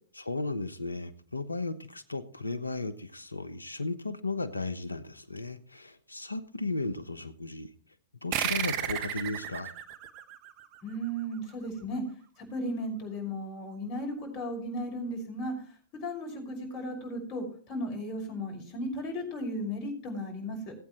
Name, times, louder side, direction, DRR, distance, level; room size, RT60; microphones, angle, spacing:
voice 1, 0.1-7.7 8.2-9.7, left 3 dB, 90° left, 14 dB, 1.0 m, -35 dB
sound 1, 8.3-11.4, right 10 dB, 40° right, 1.2 m, -34 dB
voice 2, 10.8-12.0 12.4-20.7, equal, 40° left, 3 dB, 5.6 m, -35 dB
19.0 x 8.8 x 3.2 m, 0.44 s
figure-of-eight pair, 105°, 0 cm